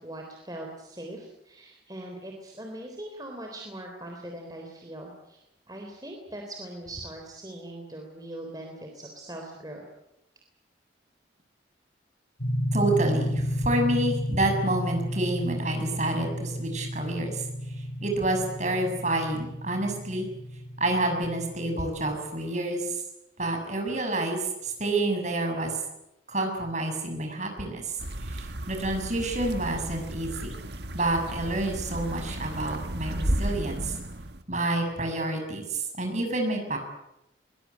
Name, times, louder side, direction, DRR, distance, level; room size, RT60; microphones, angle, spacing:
voice 1, 0.0-9.8, right 1 dB, 20° right, 1 dB, 3.7 m, -41 dB
sound 1, 12.4-22.1, equal, 65° left, 3.3 m, -32 dB
voice 2, 12.7-17.4 18.0-20.3 20.8-23.0 23.4-25.7 26.3-27.9 28.2-30.6 30.9-33.9 34.5-36.8, right 2 dB, 40° right, 4 dB, 6.7 m, -28 dB
sound 2, 28.0-34.4, right 1 dB, 65° right, 1.6 m, -33 dB
22.5 x 21.0 x 9.6 m, 0.88 s
head